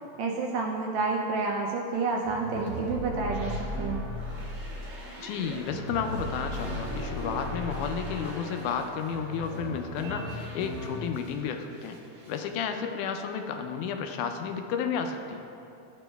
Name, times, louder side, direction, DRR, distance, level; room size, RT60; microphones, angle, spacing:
voice 1, 0.2-3.5 3.8-4.0, right 4 dB, 80° right, 0 dB, 1.6 m, -29 dB
sound 1, 2.2-11.4 11.7-12.5, left 1 dB, 50° right, 1.5 m, -37 dB
voice 2, 5.2-12.0 12.3-15.4, left 6 dB, 85° left, 5 dB, 2.1 m, -32 dB
12.5 x 7.1 x 2.2 m, 2.7 s
omnidirectional pair, 3.5 m